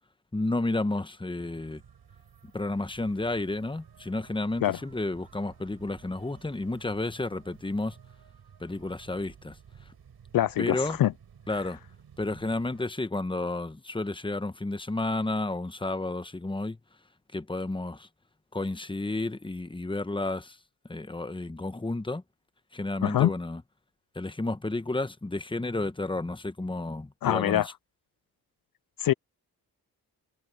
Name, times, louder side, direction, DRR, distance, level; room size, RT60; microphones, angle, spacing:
voice 1, 0.3-1.8 2.5-8.0 8.6-9.6 10.6-11.0 11.5-11.8 12.2-16.8 17.3-18.1 18.5-20.6 20.9-22.2 22.7-23.6 24.1-27.7, left 2 dB, 15° left, 1.1 m, -31 dB
sound 1, 1.4-12.8, right 7 dB, 70° right, 6.0 m, -54 dB
voice 2, 10.3-11.1 23.0-23.3 27.2-27.7 29.0-29.1, left 12 dB, 60° left, 0.5 m, -24 dB
cardioid pair, 65°, 39 cm